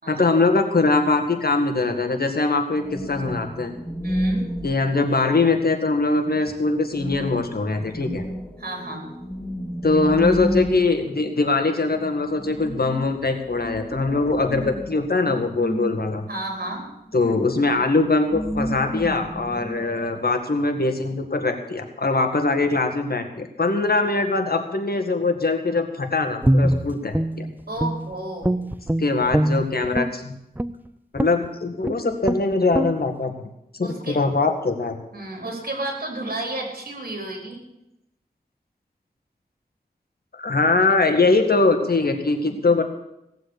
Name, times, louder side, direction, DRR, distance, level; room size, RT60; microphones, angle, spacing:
voice 1, 0.1-3.7 4.6-8.2 9.8-16.2 17.1-27.5 29.0-30.4 31.1-33.3 33.7-35.0 40.3-42.8, left 3 dB, 70° left, 5 dB, 1.9 m, -22 dB
sound 1, 2.7-5.6 6.5-6.6 6.8-17.1 17.6-20.3, equal, 10° left, 2.4 m, -31 dB
voice 2, 4.0-4.5 8.6-9.1 16.3-16.9 27.7-28.6 33.8-34.2 35.1-37.6, right 2 dB, 65° right, 1 dB, 4.4 m, -32 dB
Guitar, 26.4-28.1 28.4-30.2 30.6-30.8 31.2-31.5 31.8-32.0 32.2-32.4 32.7-32.9, right 1 dB, 10° right, 0.6 m, -22 dB
17.5 x 7.8 x 8.3 m, 0.85 s
wide cardioid pair, 70°, 16 cm